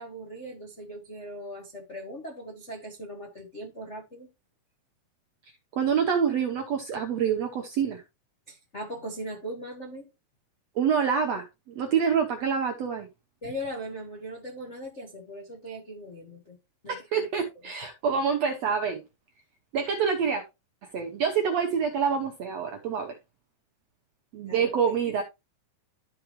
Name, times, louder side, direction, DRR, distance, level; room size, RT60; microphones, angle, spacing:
voice 1, 0.0-4.3 8.5-10.1 13.4-16.6 16.8-17.3 24.5-25.1, equal, 50° left, 0.8 m, -39 dB
voice 2, 5.7-8.0 10.8-11.5 11.7-13.1 16.9-19.0 19.7-20.4 20.9-23.2 24.3-25.2, right 7 dB, 70° right, 1.6 m, -26 dB
13.0 x 4.9 x 3.1 m
omnidirectional pair, 4.2 m